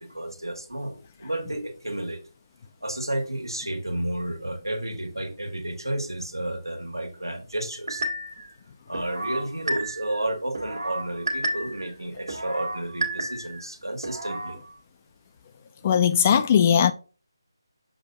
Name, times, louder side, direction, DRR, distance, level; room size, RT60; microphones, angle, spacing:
voice 1, 0.0-2.2 2.8-8.0 8.9-14.6 15.8-15.9, right 1 dB, 85° right, 1.6 m, -32 dB
sound 1, 7.9-8.5 8.9-10.2 10.5-11.9 12.3-13.6 14.0-14.5, right 1 dB, 60° right, 1.6 m, -31 dB
voice 2, 15.8-16.9, left 8 dB, 25° left, 0.5 m, -19 dB
7.1 x 2.7 x 5.3 m
figure-of-eight pair, 155°, 2 cm